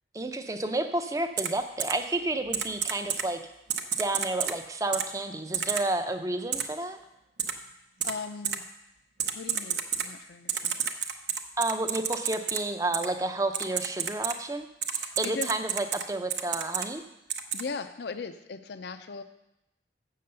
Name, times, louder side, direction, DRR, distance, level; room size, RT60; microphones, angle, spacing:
voice 1, 0.1-3.4 4.0-7.0 11.6-14.7 15.2-17.0, right 2 dB, 20° right, 8 dB, 0.5 m, -30 dB
Typing, 1.4-1.5 1.8-1.9 2.5-3.2 3.7-4.5 4.9-5.0 5.5-5.8 6.5-6.6 7.4-7.5 8.0-8.1 8.4-8.6 9.2-10.1 10.5-12.6 12.9-13.1 13.5-14.3 14.8-16.0 16.3-16.9 17.3-17.6, right 8 dB, 75° right, 0.7 m, -29 dB
voice 2, 8.0-8.7 9.3-10.8 14.9-15.5 17.5-19.2, left 4 dB, 65° left, 10 dB, 0.5 m, -38 dB
7.7 x 6.6 x 6.7 m, 0.91 s
head